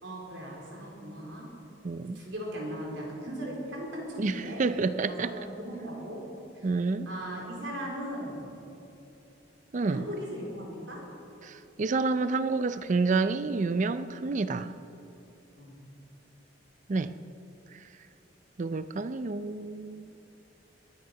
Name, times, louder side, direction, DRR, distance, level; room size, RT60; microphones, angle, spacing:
voice 1, 0.0-1.5 2.0-4.6 5.1-6.2 6.5-6.7 7.1-8.4 9.9-11.0 15.6-15.8, equal, 75° right, -2 dB, 4.2 m, -38 dB
voice 2, 1.8-2.2 4.2-5.3 6.6-7.1 9.7-10.0 11.4-14.8 16.9-17.1 18.6-20.1, right 3 dB, 40° right, 12 dB, 0.5 m, -29 dB
22.0 x 9.6 x 5.8 m, 2.8 s
head